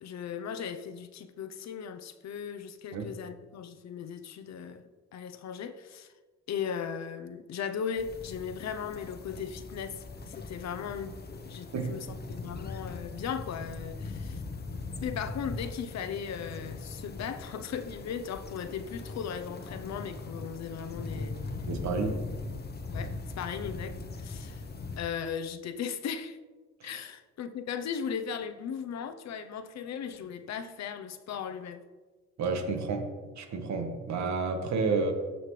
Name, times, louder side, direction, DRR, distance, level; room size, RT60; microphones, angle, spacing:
voice 1, 0.0-6.1 6.5-14.4 15.0-21.4 22.9-24.6 25.0-26.4 26.8-31.8, left 7 dB, 60° left, 0.8 m, -37 dB
sound 1, 8.0-25.0, left 3 dB, 35° left, 1.0 m, -40 dB
voice 2, 21.7-22.3 26.8-27.0 32.4-35.1, right 4 dB, 65° right, 1.5 m, -31 dB
14.5 x 5.7 x 3.3 m
cardioid pair, 90°, 30 cm